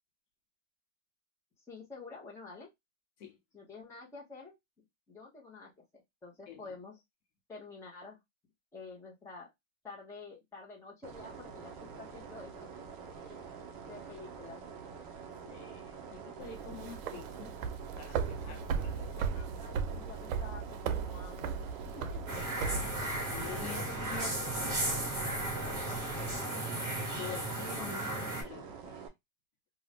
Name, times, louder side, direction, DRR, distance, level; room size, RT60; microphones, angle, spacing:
voice 1, 1.7-2.7 3.5-4.6 5.1-7.0 7.5-8.2 8.7-9.5 9.8-12.7 13.2-14.6 18.4-19.2 19.6-22.4 22.8-26.7, left 4 dB, 5° left, 0.8 m, -50 dB
sound 1, 11.0-29.1, right 6 dB, 30° right, 0.5 m, -47 dB
voice 2, 15.4-17.6 17.9-19.6 21.9-22.1 23.3-24.7 27.2-29.1, left 6 dB, 55° left, 0.9 m, -47 dB
sound 2, 16.4-26.4, right 5 dB, 75° right, 0.6 m, -38 dB
sound 3, 22.3-28.4, right 1 dB, 10° right, 1.3 m, -35 dB
2.6 x 2.3 x 3.2 m
supercardioid pair, 155°, 41 cm